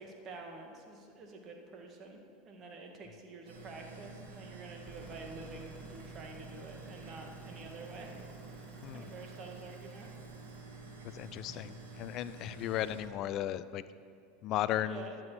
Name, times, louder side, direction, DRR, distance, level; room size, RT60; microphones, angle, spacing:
voice 1, 0.0-2.2 2.4-8.1 8.9-10.1 12.7-12.9 14.8-15.2, right 3 dB, 40° right, 2 dB, 1.9 m, -48 dB
sound 1, 3.4-13.0, right 4 dB, 85° right, 2.9 m, -49 dB
sound 2, 4.8-10.6, equal, 5° left, 2.4 m, -54 dB
voice 2, 11.1-13.8 14.4-15.0, left 12 dB, 50° left, 15 dB, 0.4 m, -35 dB
11.5 x 7.6 x 6.2 m, 2.3 s
hypercardioid pair, 90°, 0 cm